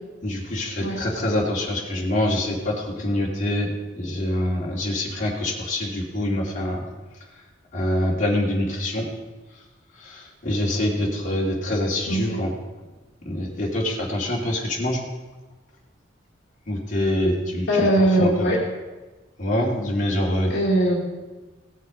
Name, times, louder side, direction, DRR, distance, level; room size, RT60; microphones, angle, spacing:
voice 1, 0.2-6.8 7.3-7.4 7.7-9.1 9.5-9.6 10.0-12.5 13.2-15.0 16.7-18.5 19.4-20.5, left 1 dB, 40° left, -3 dB, 2.6 m, -25 dB
voice 2, 12.1-12.4 17.7-18.6 20.5-21.1, right 1 dB, 60° left, -4 dB, 2.1 m, -20 dB
18.0 x 6.5 x 5.2 m, 1.2 s
head